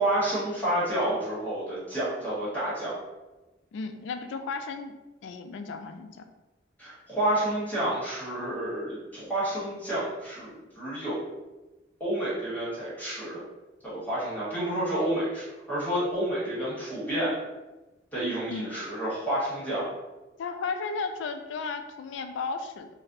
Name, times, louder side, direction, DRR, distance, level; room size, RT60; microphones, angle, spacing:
voice 1, 0.0-2.9 6.8-11.2 12.0-13.4 13.8-17.4 18.1-19.9, right 1 dB, 10° left, -10 dB, 1.1 m, -29 dB
voice 2, 3.7-4.9 5.2-6.2 18.5-18.7 20.4-22.9, left 4 dB, 85° left, 7 dB, 0.3 m, -34 dB
4.1 x 2.1 x 2.5 m, 1.1 s
head